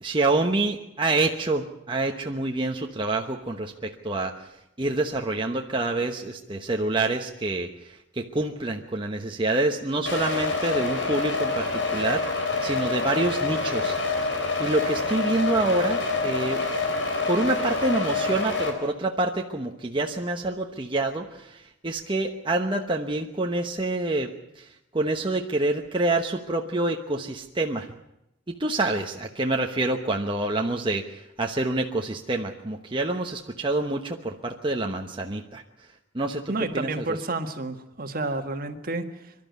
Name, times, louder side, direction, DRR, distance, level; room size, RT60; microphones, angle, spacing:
voice 1, 0.0-14.0 14.6-16.6 17.3-27.9 28.5-35.6 36.1-37.0, right 2 dB, 25° right, 2 dB, 1.0 m, -27 dB
sound 1, 10.1-18.7, left 3 dB, 75° left, 4.4 m, -27 dB
voice 2, 36.5-39.3, right 2 dB, 50° right, 7 dB, 1.7 m, -30 dB
24.5 x 12.5 x 9.4 m, 0.86 s
head